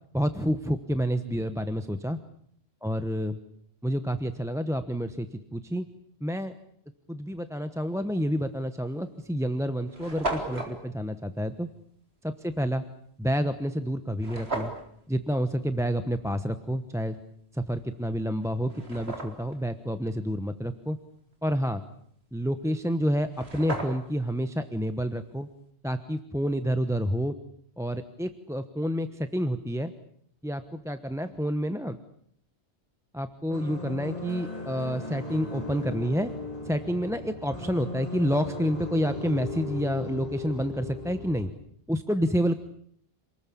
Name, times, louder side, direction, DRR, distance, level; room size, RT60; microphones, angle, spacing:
voice 1, 0.1-2.2 2.8-3.4 3.8-5.9 6.2-6.5 7.1-11.7 12.2-12.8 13.2-14.7 15.1-17.2 17.5-21.0 21.4-21.8 22.3-25.5 25.8-27.4 27.8-29.9 30.4-32.0 33.1-36.3 36.6-41.5 41.9-42.5, equal, 5° right, 10 dB, 1.1 m, -29 dB
sound 1, 8.4-8.6 9.3-9.4 9.6-9.7 9.9-10.7 14.2-14.8 17.8-17.9 18.4-19.6 22.9-23.0 23.2-24.2, right 2 dB, 75° right, 4.2 m, -34 dB
sound 2, 33.5-41.5, left 2 dB, 35° left, 5.0 m, -37 dB
27.5 x 20.0 x 8.6 m, 0.68 s
omnidirectional pair, 1.1 m